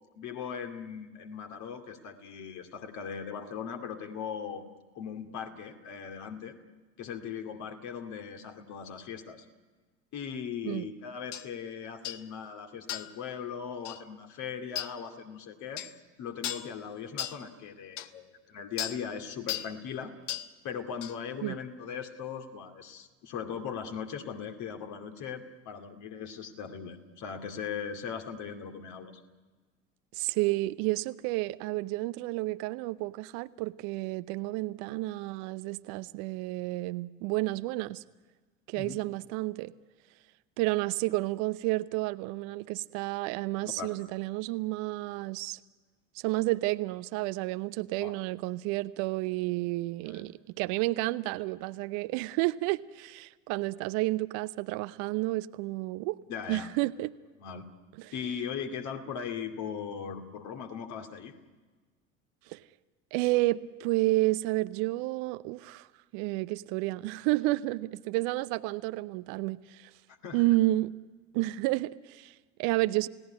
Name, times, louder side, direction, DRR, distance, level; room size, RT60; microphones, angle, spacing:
voice 1, 0.2-4.6 4.9-6.6 7.0-9.4 10.1-15.8 16.2-20.1 20.6-29.2 38.8-39.0 43.6-43.9 48.0-48.1 50.0-50.2 56.3-56.7 57.4-57.7 58.1-61.3 70.2-70.6, left 7 dB, 45° left, 5 dB, 2.5 m, -39 dB
sound 1, 11.3-11.5 12.0-12.2 12.9-13.2 13.8-14.0 14.7-14.9 15.8-15.9 16.4-16.7 17.2-17.4 18.0-18.1 18.8-19.0 19.5-19.7 20.3-20.5 21.0-21.2, left 11 dB, 65° left, 1.1 m, -36 dB
voice 2, 30.1-38.0 38.7-39.7 40.6-45.6 46.1-56.2 56.5-57.1 58.0-58.1 62.5-62.6 63.1-65.9 66.1-69.9 70.3-70.9 71.3-73.1, right 19 dB, 50° right, 14 dB, 0.7 m, -31 dB
29.0 x 17.5 x 9.8 m, 1.4 s
figure-of-eight pair, 70°, 39 cm